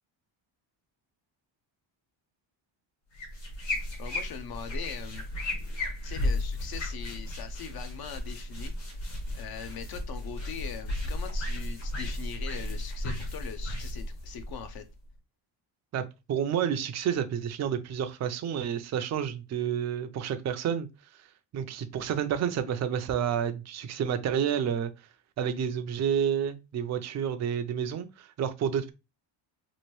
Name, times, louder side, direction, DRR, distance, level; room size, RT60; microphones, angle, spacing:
sound 1, 3.1-15.1, left 1 dB, 65° left, 1.5 m, -34 dB
voice 1, 4.0-5.2 6.0-8.7 9.3-14.8, left 8 dB, 50° left, 0.5 m, -41 dB
voice 2, 16.3-20.9 21.5-24.9 25.4-28.9, right 8 dB, 35° right, 0.4 m, -29 dB
3.0 x 2.5 x 3.0 m
cardioid pair, 125°, 49 cm